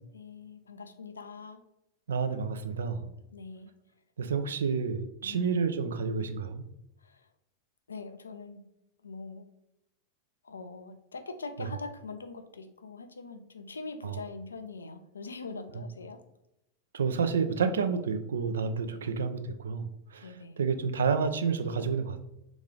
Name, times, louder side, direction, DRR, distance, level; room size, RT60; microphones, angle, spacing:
voice 1, 0.0-1.6 3.3-3.7 5.2-5.6 7.0-7.3 7.9-8.6 9.0-9.4 10.4-16.2 18.9-19.2 20.2-20.6, left 4 dB, 75° left, 8 dB, 0.4 m, -43 dB
voice 2, 2.1-3.1 4.2-6.6 11.6-11.7 14.0-14.2 16.9-22.2, right 5 dB, 65° right, 9 dB, 0.4 m, -30 dB
3.6 x 3.0 x 3.7 m, 0.84 s
figure-of-eight pair, 90°, 0 cm